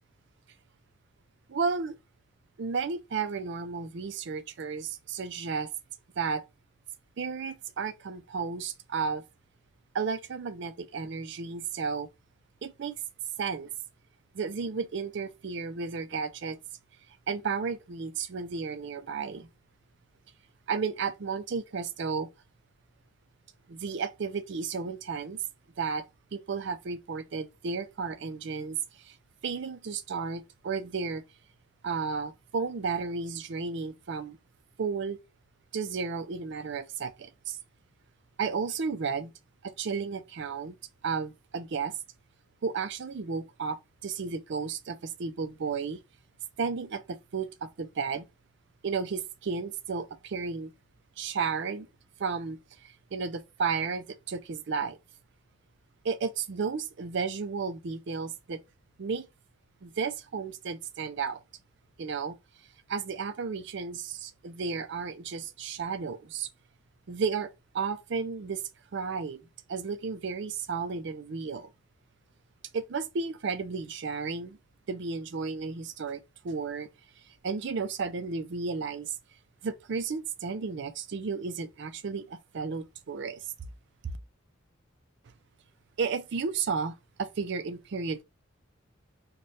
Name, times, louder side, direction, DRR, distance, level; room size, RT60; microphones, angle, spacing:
voice 1, 1.5-2.0 2.6-5.7 6.2-6.4 7.2-9.2 9.9-12.1 12.6-12.9 13.4-13.7 14.3-16.6 17.3-19.5 20.7-22.3 23.7-25.4 25.8-26.0 26.3-29.2 29.4-31.2 31.8-34.4 34.8-35.2 35.7-37.6 38.4-39.3 39.6-40.8 41.0-41.9 42.6-46.0 46.6-48.3 48.8-50.7 51.2-51.9 52.2-55.0 56.0-58.6 59.0-59.3 59.8-61.4 62.0-62.4 62.9-66.5 67.1-67.5 67.7-68.6 68.9-69.4 69.7-71.7 72.7-74.6 74.9-76.9 77.4-79.2 79.6-83.4 84.0-84.1 86.0-88.2, right 5 dB, 60° right, 0.4 m, -33 dB
4.0 x 2.2 x 3.2 m
head